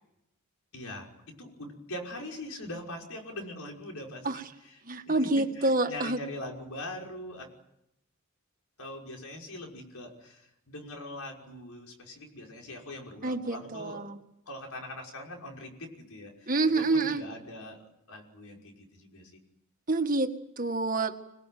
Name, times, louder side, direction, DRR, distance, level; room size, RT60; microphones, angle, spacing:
voice 1, 0.7-4.8 5.0-7.5 8.8-14.1 14.5-19.3, left 1 dB, 85° left, 1 dB, 5.9 m, -42 dB
voice 2, 4.9-6.2 13.2-14.2 16.5-17.2 19.9-21.2, right 2 dB, 40° right, 6 dB, 1.8 m, -27 dB
26.0 x 19.5 x 9.4 m, 0.84 s
head